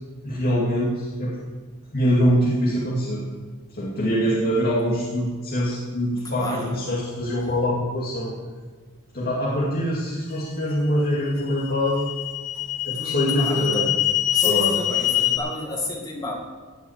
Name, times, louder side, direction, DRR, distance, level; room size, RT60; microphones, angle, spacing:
voice 1, 0.2-1.4 1.9-3.2 3.7-8.3 9.1-12.1 12.8-13.9 14.4-14.7, equal, 45° left, -6 dB, 2.3 m, -24 dB
voice 2, 6.2-6.8 12.9-13.9 14.3-16.3, left 1 dB, 15° left, -1 dB, 2.1 m, -31 dB
sound 1, 10.4-10.5 11.3-15.4, left 13 dB, 80° left, 2.6 m, -24 dB
15.5 x 6.1 x 8.8 m, 1.4 s
head